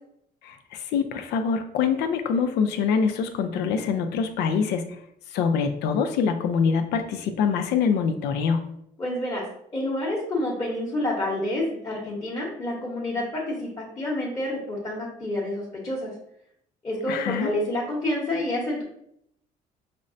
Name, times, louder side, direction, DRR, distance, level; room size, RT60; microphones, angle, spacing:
voice 1, 0.9-4.9 5.3-8.7 17.1-17.5, left 6 dB, 80° left, 7 dB, 0.4 m, -24 dB
voice 2, 9.0-9.4 9.7-13.7 14.0-16.1 16.8-18.8, left 1 dB, 20° left, -6 dB, 1.0 m, -28 dB
5.1 x 2.1 x 2.5 m, 0.72 s
cardioid pair, 110°, 17 cm